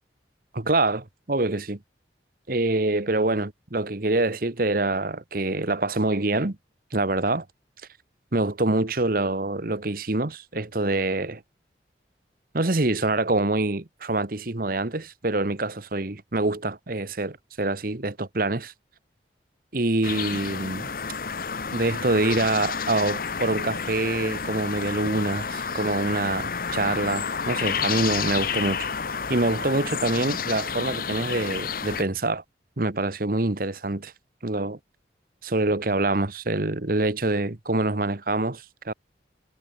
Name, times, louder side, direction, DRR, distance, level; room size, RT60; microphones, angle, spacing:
voice 1, 0.5-1.8 2.5-6.6 6.9-7.4 8.3-11.4 12.5-18.7 19.7-20.9 21.7-28.9 29.3-32.4 32.8-34.1 34.4-34.8 35.4-38.9, right 2 dB, 50° right, 1.3 m, -25 dB
sound 1, 20.0-32.0, left 6 dB, 50° left, 0.9 m, -30 dB
head